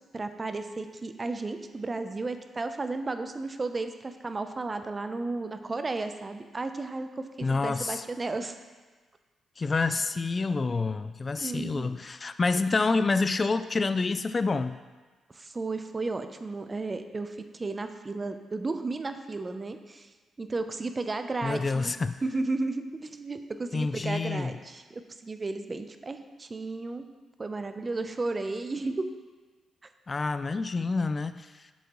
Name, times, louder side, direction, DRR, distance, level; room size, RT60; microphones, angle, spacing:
voice 1, 0.1-8.6 11.4-12.0 15.3-20.1 20.4-22.0 22.2-27.1 27.4-29.1, right 3 dB, 35° right, 8 dB, 0.6 m, -33 dB
voice 2, 7.4-8.0 9.6-14.8 21.4-22.2 23.7-24.5 30.1-31.7, left 3 dB, 40° left, 12 dB, 0.3 m, -28 dB
7.3 x 7.1 x 3.0 m, 1.3 s
supercardioid pair, 50°, 0 cm